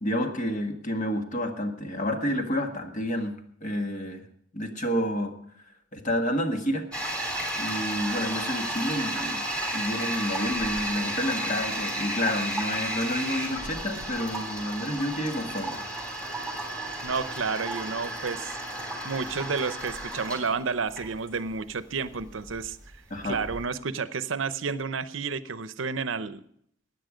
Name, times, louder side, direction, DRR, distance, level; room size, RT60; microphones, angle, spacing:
voice 1, 0.0-4.2 4.5-5.3 5.9-6.9 7.5-9.4 9.7-15.8 23.1-23.4, equal, 40° left, 4 dB, 1.7 m, -29 dB
Toilet flush, 6.9-23.6, right 1 dB, 5° left, 3.2 m, -33 dB
voice 2, 17.0-18.6 19.0-22.8 23.2-26.4, right 5 dB, 80° right, 14 dB, 0.7 m, -31 dB
15.5 x 10.0 x 5.1 m, 0.69 s
head